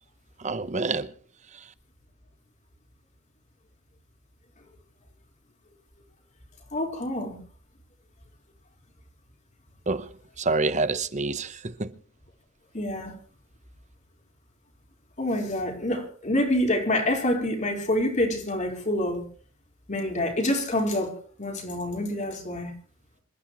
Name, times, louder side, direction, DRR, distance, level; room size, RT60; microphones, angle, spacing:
voice 1, 0.4-1.1 9.9-10.1 10.4-11.9, right 3 dB, 35° right, 1.0 m, -27 dB
voice 2, 6.7-7.4 12.7-13.2 15.2-19.3 19.9-22.7, left 1 dB, 35° left, 4.4 m, -27 dB
27.5 x 14.0 x 3.1 m
head